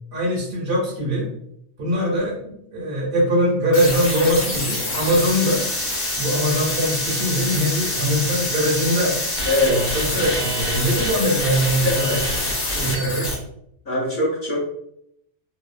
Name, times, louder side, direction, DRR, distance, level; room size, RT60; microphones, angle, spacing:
voice 1, 0.1-1.3 1.8-5.6 6.2-9.2 9.6-12.2 12.7-13.3, equal, 55° right, -4 dB, 0.9 m, -22 dB
sound 1, 3.7-13.3, left 1 dB, 65° left, 1.1 m, -25 dB
voice 2, 9.4-9.8 11.8-12.2 13.9-14.7, left 2 dB, 50° left, -7 dB, 0.8 m, -22 dB
2.7 x 2.3 x 2.4 m, 0.74 s
omnidirectional pair, 1.2 m